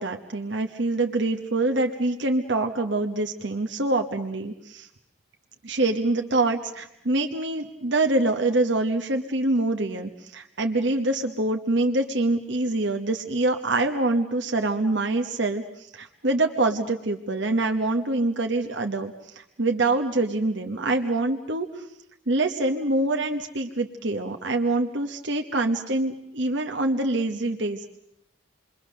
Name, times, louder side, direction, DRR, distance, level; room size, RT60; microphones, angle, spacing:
voice 1, 0.0-4.9 5.6-21.9 22.3-28.0, right 2 dB, 60° right, 4 dB, 1.2 m, -25 dB
28.5 x 22.5 x 6.6 m, 0.82 s
head